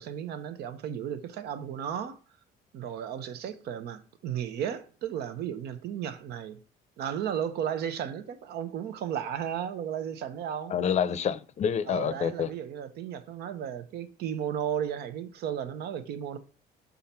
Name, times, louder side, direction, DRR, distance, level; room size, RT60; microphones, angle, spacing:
voice 1, 0.0-2.2 2.7-6.6 7.0-10.8 11.9-16.4, right 9 dB, 75° right, 0.9 m, -34 dB
voice 2, 10.7-12.5, left 8 dB, 40° left, 0.6 m, -28 dB
7.0 x 3.8 x 4.3 m
cardioid pair, 110°, 17 cm